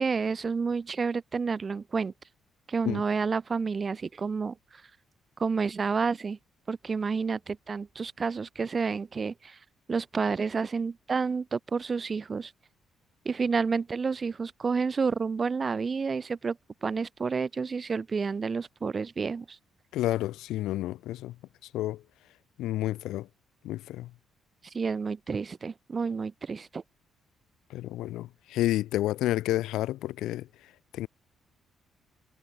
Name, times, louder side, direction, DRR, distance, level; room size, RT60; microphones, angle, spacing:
voice 1, 0.0-2.1 2.7-4.5 5.4-6.4 6.7-9.6 9.9-12.5 13.2-16.6 16.8-19.6 24.7-26.8, right 5 dB, 35° right, 6.6 m, -30 dB
voice 2, 19.9-21.3 21.7-22.0 22.6-23.3 23.6-24.1 27.7-30.5 30.9-31.1, left 15 dB, 90° left, 1.5 m, -30 dB
cardioid pair, 90°, 0 cm